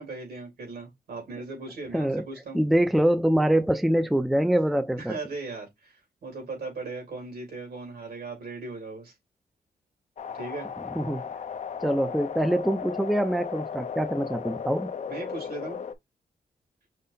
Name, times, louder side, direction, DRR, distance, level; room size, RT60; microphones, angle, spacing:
voice 1, 0.0-2.6 5.0-9.1 10.3-10.7 15.1-15.8, right 3 dB, 80° right, 3.2 m, -38 dB
voice 2, 1.9-2.2 2.5-5.2 10.9-11.2 11.8-14.9, right 1 dB, ahead, 0.5 m, -24 dB
sound 1, 10.2-15.9, left 7 dB, 50° left, 0.6 m, -36 dB
5.6 x 2.1 x 4.0 m
wide cardioid pair, 130°, 16 cm